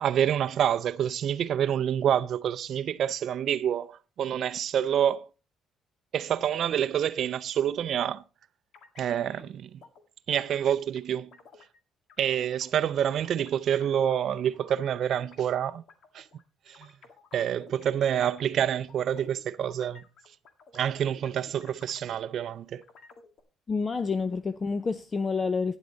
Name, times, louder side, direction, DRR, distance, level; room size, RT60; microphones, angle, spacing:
voice 1, 0.0-5.3 6.1-8.2 9.0-9.7 10.3-11.3 12.2-15.8 16.1-16.3 16.7-16.9 17.3-20.0 20.7-22.8, right 9 dB, 55° right, 0.5 m, -27 dB
sound 1, 8.7-9.5 9.8-10.0 10.5-11.8 12.1-17.9 18.2-22.4 22.7-23.4, left 4 dB, 60° left, 1.8 m, -53 dB
voice 2, 23.7-25.8, left 4 dB, 25° left, 0.5 m, -28 dB
11.5 x 9.9 x 3.9 m
cardioid pair, 145°, 0 cm